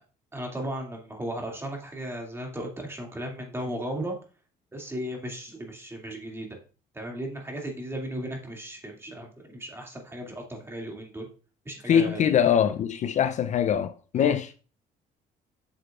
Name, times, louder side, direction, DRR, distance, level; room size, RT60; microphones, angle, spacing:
voice 1, 0.3-4.2 4.7-6.5 6.9-11.3 11.7-12.3 14.1-14.3, right 1 dB, 15° right, 2.3 m, -35 dB
voice 2, 11.9-14.5, left 8 dB, 45° left, 0.4 m, -23 dB
8.5 x 6.5 x 2.4 m
cardioid pair, 110°, 17 cm